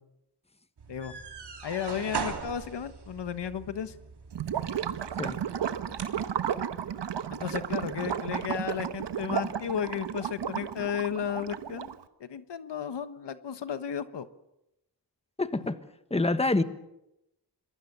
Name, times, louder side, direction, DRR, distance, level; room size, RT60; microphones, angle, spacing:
sound 1, 0.8-6.3, right 6 dB, 70° right, 3.4 m, -40 dB
voice 1, 1.6-3.9 7.3-11.9 12.2-14.3, left 8 dB, 80° left, 11 dB, 1.3 m, -34 dB
Gurgling / Liquid, 4.3-12.0, right 8 dB, 85° right, 1.2 m, -33 dB
voice 2, 15.4-15.8 16.1-16.6, left 2 dB, 15° left, 10 dB, 1.5 m, -26 dB
26.5 x 22.0 x 6.9 m, 0.87 s
wide cardioid pair, 80°, 41 cm